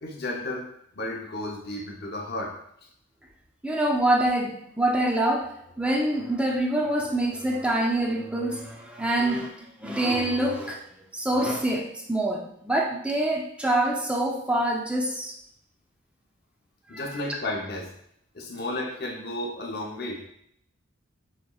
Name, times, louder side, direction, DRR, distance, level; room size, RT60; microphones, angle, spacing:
voice 1, 0.0-2.6 16.9-17.9 18.3-20.3, left 1 dB, 50° left, 0 dB, 0.8 m, -33 dB
voice 2, 3.6-5.5 5.8-10.8 11.1-15.3 16.9-17.0, right 1 dB, 5° right, -1 dB, 0.5 m, -25 dB
6.1 x 3.1 x 2.4 m, 0.72 s
head